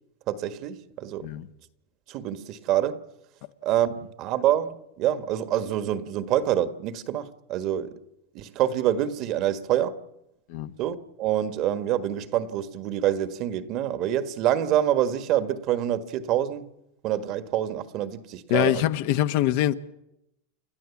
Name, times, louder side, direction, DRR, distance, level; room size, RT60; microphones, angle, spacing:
voice 1, 0.3-1.3 2.1-3.0 3.6-8.0 8.3-10.0 10.8-16.7 17.0-18.8, right 11 dB, 50° right, 1.6 m, -26 dB
voice 2, 18.5-19.7, left 14 dB, 65° left, 1.1 m, -23 dB
29.5 x 12.5 x 7.2 m
hypercardioid pair, 105°, 0 cm